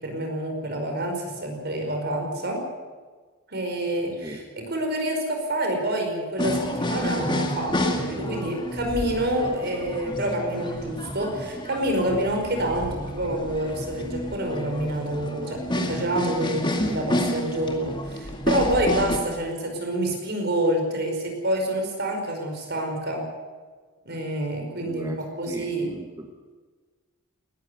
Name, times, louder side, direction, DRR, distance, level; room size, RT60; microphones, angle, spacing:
voice 1, 0.0-2.6 3.5-23.2 24.0-25.9, right 1 dB, 50° right, 3 dB, 5.2 m, -27 dB
sound 1, 6.4-19.2, left 1 dB, 20° left, 2.2 m, -30 dB
voice 2, 24.8-25.2 25.4-26.3, right 1 dB, 15° right, 2 dB, 1.5 m, -38 dB
20.0 x 14.0 x 9.4 m, 1.4 s
head